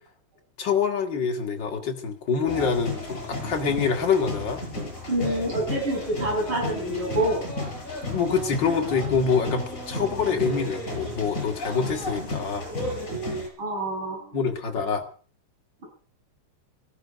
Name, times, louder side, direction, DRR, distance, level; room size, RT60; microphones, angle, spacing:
voice 1, 0.6-4.6 8.1-12.6 14.3-15.0, left 5 dB, 40° left, 3 dB, 2.4 m, -25 dB
sound 1, 2.5-13.5, left 2 dB, 25° left, 6.5 m, -33 dB
voice 2, 5.1-7.4 10.0-10.4 13.6-14.4, right 1 dB, 40° right, -1 dB, 7.5 m, -27 dB
18.0 x 15.0 x 5.2 m, 0.42 s
omnidirectional pair, 3.4 m